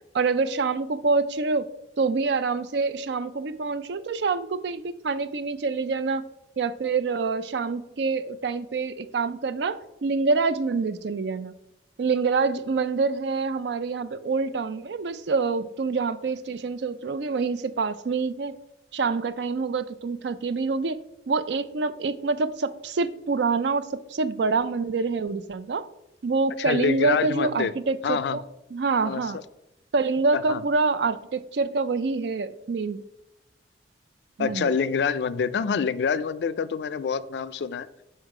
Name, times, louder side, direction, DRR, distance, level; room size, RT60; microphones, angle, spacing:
voice 1, 0.1-1.7 2.0-6.2 6.6-11.5 12.0-18.6 18.9-21.0 21.3-25.8 26.2-28.4 28.7-29.4 29.9-33.0 34.4-34.7, right 4 dB, 65° right, 0.4 m, -26 dB
voice 2, 26.6-27.7 28.0-28.4 29.0-29.4 30.3-30.6 34.4-37.9, left 6 dB, 65° left, 0.3 m, -26 dB
6.3 x 4.5 x 4.8 m
head